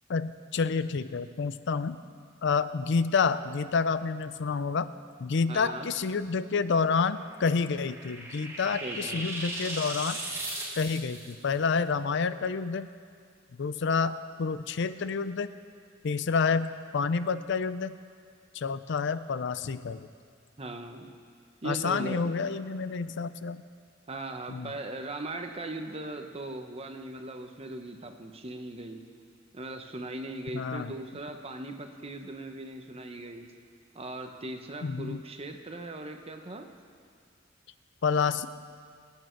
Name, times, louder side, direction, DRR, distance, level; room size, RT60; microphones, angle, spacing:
voice 1, 0.1-2.0 2.4-4.9 5.2-10.2 10.7-12.9 13.6-15.5 16.0-17.9 18.5-20.1 21.6-23.6 24.5-24.7 30.5-30.9 34.8-35.2 38.0-38.5, left 5 dB, 65° left, 13 dB, 0.5 m, -29 dB
voice 2, 5.5-5.9 8.8-9.2 20.6-21.1 21.6-22.2 24.1-29.0 29.5-33.5 33.9-36.7, right 2 dB, 30° right, 5 dB, 1.0 m, -39 dB
sound 1, 7.2-11.3, right 1 dB, 15° right, 1.9 m, -37 dB
25.0 x 8.9 x 4.6 m, 2.1 s
head